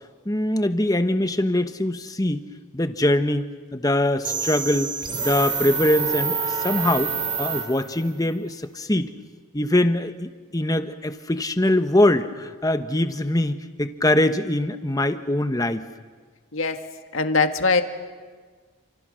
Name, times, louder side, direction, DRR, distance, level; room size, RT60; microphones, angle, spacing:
voice 1, 0.2-2.4 2.7-3.4 3.7-4.9 5.2-9.1 9.5-15.8, left 1 dB, 15° left, 9 dB, 1.0 m, -23 dB
sound 1, 4.2-8.1, right 5 dB, 25° right, 2.4 m, -27 dB
voice 2, 16.5-16.9 17.1-17.8, left 4 dB, 75° left, 7 dB, 1.8 m, -21 dB
29.0 x 27.0 x 6.3 m, 1.5 s
head